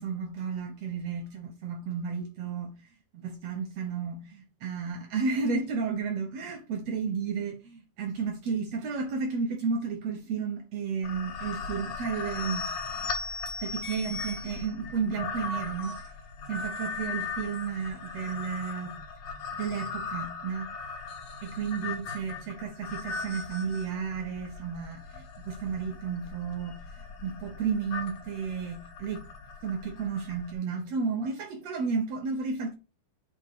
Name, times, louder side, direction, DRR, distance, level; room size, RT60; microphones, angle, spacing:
voice 1, 0.0-2.8 3.1-12.7 13.6-16.0 16.5-19.0 19.5-20.7 21.4-29.3 29.6-32.7, right 5 dB, 70° right, 1.6 m, -32 dB
sound 1, 11.0-30.5, left 4 dB, 60° left, 1.9 m, -38 dB
8.7 x 3.4 x 4.7 m
omnidirectional pair, 4.3 m